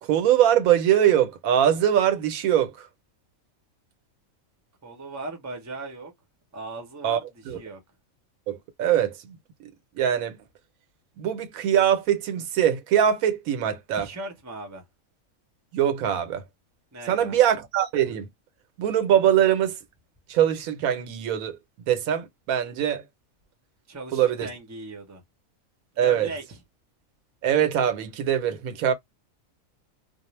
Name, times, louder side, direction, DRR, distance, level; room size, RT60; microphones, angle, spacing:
voice 1, 0.0-2.9 7.0-7.2 7.5-7.6 8.5-9.4 9.9-10.4 11.2-14.1 15.7-16.4 17.1-18.3 18.8-19.8 20.3-21.6 21.9-23.0 24.1-24.5 26.0-26.3 27.4-28.9, right 10 dB, 80° right, 1.0 m, -22 dB
voice 2, 4.8-6.1 6.5-7.8 13.9-14.8 16.9-17.4 23.9-25.2 26.0-26.6, right 2 dB, 20° right, 0.5 m, -38 dB
2.4 x 2.0 x 3.0 m
omnidirectional pair, 1.4 m